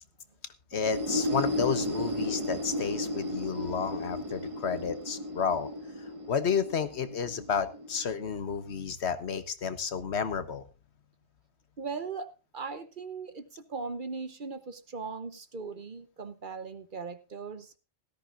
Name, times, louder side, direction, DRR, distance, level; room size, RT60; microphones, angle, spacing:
voice 1, 0.7-5.7 6.3-10.6, left 6 dB, 65° left, 12 dB, 1.3 m, -31 dB
sound 1, 0.7-8.4, left 1 dB, 25° right, 1.5 m, -34 dB
voice 2, 11.8-17.8, right 4 dB, 45° right, 12 dB, 1.0 m, -39 dB
17.5 x 13.5 x 2.5 m, 0.30 s
omnidirectional pair, 1.2 m